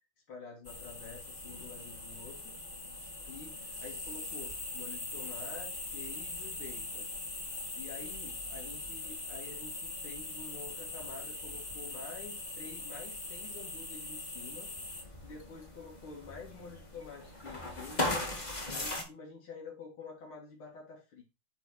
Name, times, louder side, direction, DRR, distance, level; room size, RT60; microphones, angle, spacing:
voice 1, 0.3-2.6 3.3-7.1 7.7-14.7 15.0-18.3 18.7-21.2, left 5 dB, 85° left, -2 dB, 3.4 m, -48 dB
sound 1, 0.6-19.0, left 2 dB, 20° left, 1.8 m, -40 dB
9.0 x 4.6 x 4.6 m, 0.28 s
omnidirectional pair, 2.3 m